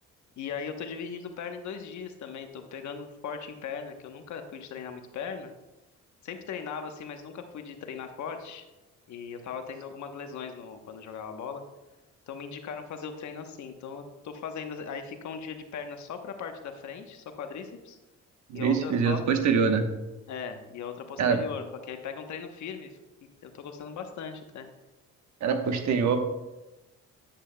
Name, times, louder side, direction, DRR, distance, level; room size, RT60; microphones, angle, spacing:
voice 1, 0.4-5.5 6.2-8.7 9.1-11.6 12.3-18.0 18.5-19.2 20.3-23.0 23.4-24.7, left 6 dB, 70° left, 6 dB, 1.0 m, -38 dB
voice 2, 18.5-19.9 21.2-21.4 25.4-26.2, right 6 dB, 65° right, 6 dB, 1.1 m, -24 dB
9.9 x 8.4 x 2.2 m, 1.0 s
cardioid pair, 90°, 30 cm